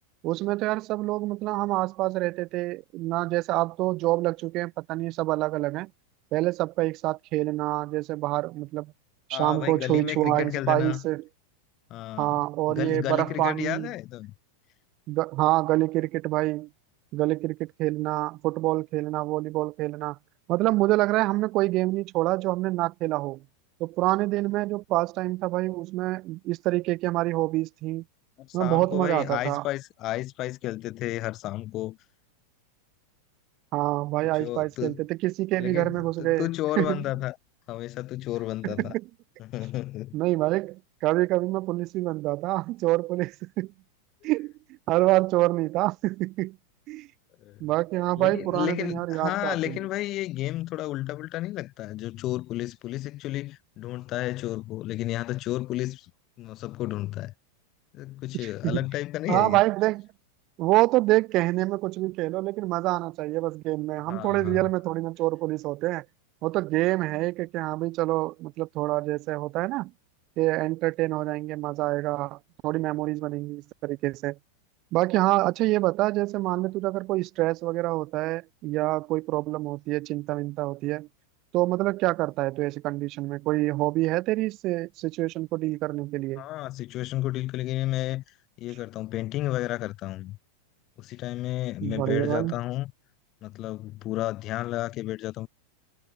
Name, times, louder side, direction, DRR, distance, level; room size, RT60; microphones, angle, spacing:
voice 1, 0.2-5.9 6.3-8.9 9.3-11.2 12.2-13.9 15.1-16.7 17.1-20.2 20.5-23.4 23.8-28.0 28.5-29.6 33.7-36.5 36.8-37.0 38.6-39.0 40.1-43.7 44.2-44.5 44.9-46.6 46.9-47.1 47.6-49.8 58.3-58.8 59.3-60.1 60.6-66.0 66.4-69.9 70.4-74.4 74.9-81.1 81.5-86.4 91.8-92.5, right 19 dB, 40° right, 6.2 m, -26 dB
voice 2, 9.3-11.0 11.9-12.4 12.7-14.3 28.4-32.0 34.3-35.0 35.6-37.4 37.7-38.9 39.4-40.2 47.4-47.6 48.2-56.1 56.4-57.3 57.9-59.6 64.1-64.6 86.4-88.2 88.6-90.4 91.0-92.9 93.4-95.5, left 16 dB, 35° left, 5.1 m, -32 dB
figure-of-eight pair, 90°, 0 cm